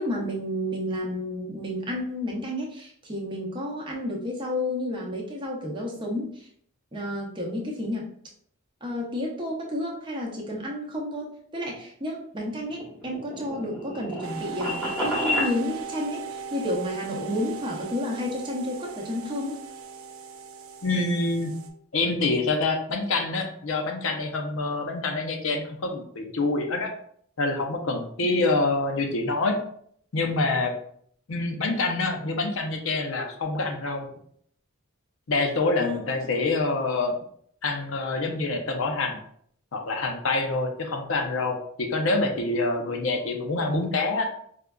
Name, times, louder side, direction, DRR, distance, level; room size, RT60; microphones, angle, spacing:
voice 1, 0.0-6.5 6.9-8.1 8.8-19.6 35.8-36.0, left 1 dB, 20° right, -2 dB, 0.6 m, -31 dB
sound 1, 12.6-15.5, left 1 dB, 5° left, 0.9 m, -30 dB
sound 2, 14.2-21.7, right 6 dB, 75° right, 0.5 m, -38 dB
voice 2, 20.8-21.5 21.9-26.9 27.4-29.6 30.1-30.7 31.3-34.1 35.3-37.1 37.6-39.2 39.7-44.3, left 3 dB, 65° left, 3 dB, 0.5 m, -26 dB
5.0 x 2.3 x 2.2 m, 0.64 s
head